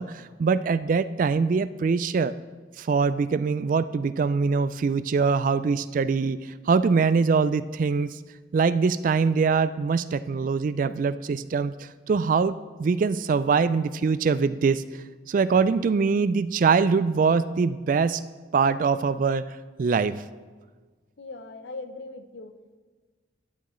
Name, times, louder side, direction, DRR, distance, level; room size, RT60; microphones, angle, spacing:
voice 1, 0.0-2.3 2.8-6.4 6.7-8.2 8.5-14.8 15.3-18.2 18.5-20.2, right 5 dB, 45° right, 15 dB, 0.3 m, -23 dB
voice 2, 21.2-22.8, left 3 dB, 75° left, 9 dB, 0.7 m, -40 dB
12.0 x 10.0 x 3.1 m, 1.4 s
head